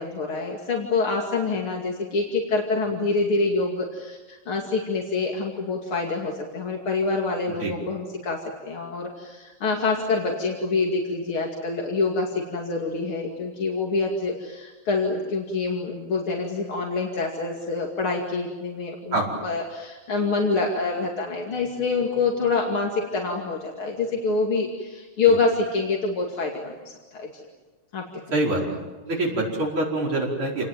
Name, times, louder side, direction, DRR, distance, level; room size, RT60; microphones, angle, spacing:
voice 1, 0.0-8.4 8.6-27.3 27.9-28.4, left 3 dB, 90° left, -1 dB, 3.4 m, -26 dB
voice 2, 29.1-30.7, right 2 dB, 85° right, -4 dB, 5.9 m, -24 dB
28.5 x 20.5 x 9.2 m, 1.2 s
omnidirectional pair, 2.3 m